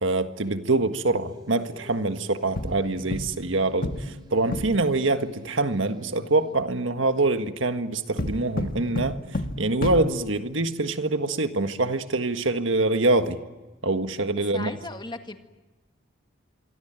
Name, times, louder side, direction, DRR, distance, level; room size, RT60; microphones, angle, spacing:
voice 1, 0.0-9.2 9.6-13.4 13.8-14.7, right 2 dB, 70° right, 8 dB, 1.7 m, -25 dB
sound 1, 1.2-6.5, equal, 20° right, 3.2 m, -47 dB
sound 2, 2.6-3.5 3.8-4.9 8.2-10.4, left 1 dB, 45° left, 1.5 m, -31 dB
voice 2, 14.3-15.4, left 2 dB, 25° left, 7 dB, 1.8 m, -37 dB
26.0 x 24.5 x 9.1 m, 1.2 s
head